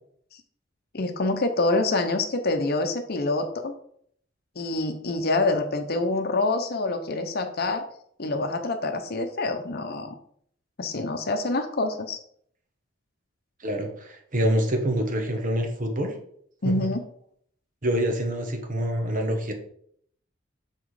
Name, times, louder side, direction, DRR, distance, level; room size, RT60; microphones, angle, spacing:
voice 1, 0.9-3.7 4.6-7.8 8.2-10.1 10.8-12.2 16.6-17.0, left 2 dB, 50° left, 6 dB, 0.8 m, -26 dB
voice 2, 13.6-16.1 16.6-16.9 17.8-19.5, right 1 dB, 45° right, 4 dB, 1.2 m, -26 dB
6.1 x 4.5 x 4.8 m, 0.65 s
head